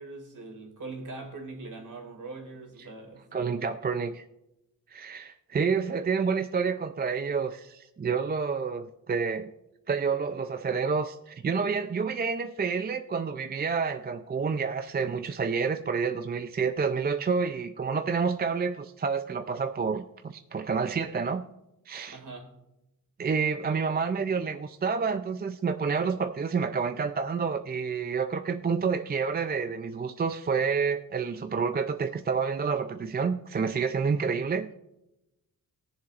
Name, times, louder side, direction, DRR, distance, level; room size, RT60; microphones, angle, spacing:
voice 1, 0.0-3.2 22.1-22.5, right 3 dB, 55° right, 2.4 m, -42 dB
voice 2, 3.3-4.2 4.9-9.5 9.9-21.4 21.9-22.2 23.2-34.7, right 5 dB, 25° right, 0.4 m, -29 dB
20.5 x 7.2 x 2.5 m
wide cardioid pair, 120°, 37 cm